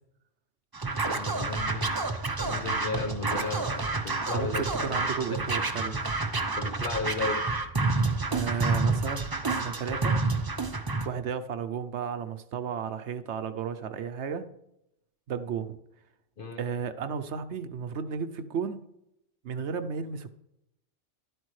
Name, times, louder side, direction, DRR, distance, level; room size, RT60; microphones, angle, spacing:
Scratching (performance technique), 0.7-11.1, right 3 dB, 25° right, 0.5 m, -29 dB
voice 1, 1.1-5.5 6.6-7.5 16.4-16.6, left 4 dB, 50° left, 6 dB, 1.1 m, -35 dB
voice 2, 4.3-6.0 8.3-10.2 11.0-14.5 15.3-15.8 16.6-18.8 19.4-20.3, right 7 dB, 70° right, 10 dB, 0.9 m, -33 dB
12.5 x 11.5 x 3.2 m, 0.84 s
omnidirectional pair, 1.3 m